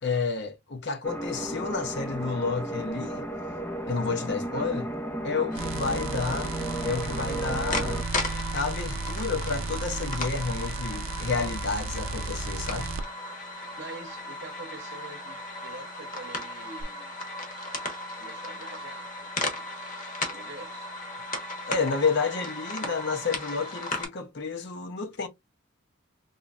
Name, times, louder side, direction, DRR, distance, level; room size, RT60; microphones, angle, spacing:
voice 1, 0.0-3.3 3.9-4.9 5.2-6.5 6.8-8.0 8.5-12.9 21.6-25.3, left 4 dB, 55° left, 0.7 m, -30 dB
sound 1, 1.0-8.0, right 1 dB, 10° left, 0.4 m, -34 dB
sound 2, 5.5-24.1, left 2 dB, 40° left, 1.1 m, -36 dB
sound 3, 5.6-13.0 16.8-16.9, right 3 dB, 75° right, 0.5 m, -34 dB
voice 2, 7.3-7.9 13.8-17.1 18.2-19.7 20.2-20.9, right 3 dB, 55° right, 0.9 m, -45 dB
3.9 x 3.1 x 2.4 m
head